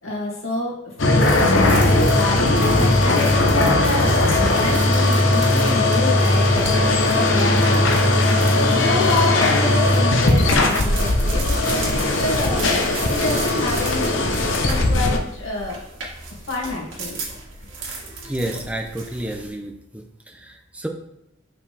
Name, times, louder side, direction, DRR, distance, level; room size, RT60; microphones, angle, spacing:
voice 1, 0.0-8.4 8.7-12.6 13.0-15.8 16.5-17.2, left 2 dB, 85° left, -3 dB, 2.3 m, -28 dB
sound 1, 1.0-15.2, left 2 dB, 65° left, 0.8 m, -18 dB
sound 2, 1.2-19.5, right 3 dB, 70° right, 2.2 m, -36 dB
voice 2, 18.2-20.9, right 1 dB, 5° right, 3 dB, 0.6 m, -30 dB
6.9 x 5.8 x 3.3 m, 0.83 s
head